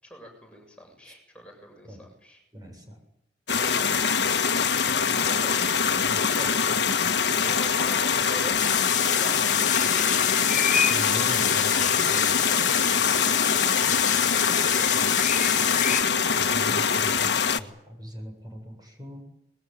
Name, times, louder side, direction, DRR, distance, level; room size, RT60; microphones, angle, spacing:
voice 1, 0.0-2.4 3.5-4.4 5.1-5.6 6.9-8.6 8.9-10.3 11.0-11.5 12.4-15.2, equal, 5° left, 2 dB, 7.1 m, -45 dB
voice 2, 2.5-3.0 3.5-3.7 5.1-5.6 6.0-6.5 10.9-12.4 16.3-19.2, equal, 20° right, 3 dB, 7.4 m, -41 dB
sound 1, 3.5-17.6, left 6 dB, 75° left, 1.7 m, -24 dB
sound 2, 8.6-16.0, left 9 dB, 45° left, 2.2 m, -27 dB
26.5 x 21.5 x 9.3 m, 0.80 s
head